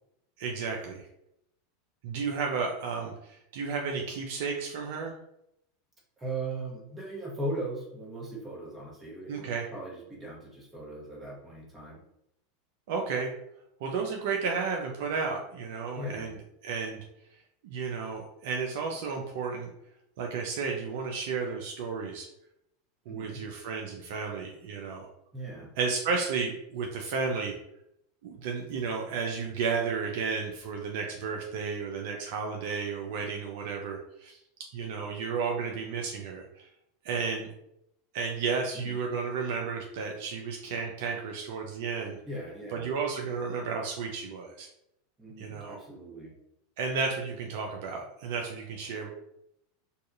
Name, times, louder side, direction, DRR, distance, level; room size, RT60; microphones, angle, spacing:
voice 1, 0.4-1.1 2.0-5.1 9.3-9.7 12.9-13.3 13.8-16.4 16.6-17.0 17.6-19.7 20.2-22.3 23.1-25.1 25.8-27.6 28.2-34.4 34.7-36.7 37.0-37.5 38.1-42.2 42.7-44.7 45.4-45.8 46.8-49.2, right 5 dB, 60° right, 1 dB, 0.4 m, -33 dB
voice 2, 6.2-12.0 15.9-16.3 23.1-23.4 25.3-25.7 38.7-39.0 42.3-42.9 45.2-46.3, right 2 dB, 15° right, -3 dB, 1.1 m, -38 dB
2.6 x 2.3 x 2.4 m, 0.79 s
hypercardioid pair, 90°, 0 cm